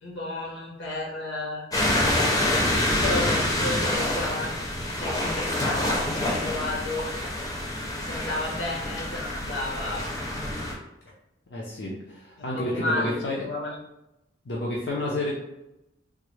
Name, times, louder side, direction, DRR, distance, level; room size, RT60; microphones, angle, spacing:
voice 1, 0.0-1.7 3.0-4.5 5.0-7.1 8.0-10.0 12.4-13.8, left 2 dB, 90° left, -3 dB, 1.1 m, -32 dB
sound 1, 1.7-10.7, left 1 dB, 20° left, 0.6 m, -27 dB
voice 2, 11.5-13.4 14.5-15.3, left 1 dB, 65° left, -4 dB, 0.5 m, -30 dB
3.6 x 2.1 x 3.1 m, 0.92 s
head